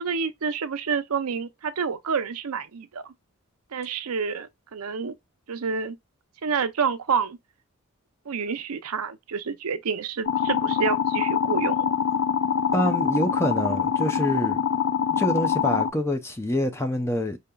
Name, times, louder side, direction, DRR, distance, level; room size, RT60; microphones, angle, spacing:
voice 1, 0.0-3.0 3.7-5.2 5.5-6.0 6.4-7.4 8.3-11.9, right 5 dB, 85° right, 0.6 m, -28 dB
sound 1, 10.3-15.9, left 7 dB, 60° left, 0.5 m, -24 dB
voice 2, 12.7-14.6 15.1-17.4, equal, 10° left, 0.5 m, -26 dB
5.0 x 2.8 x 2.2 m
head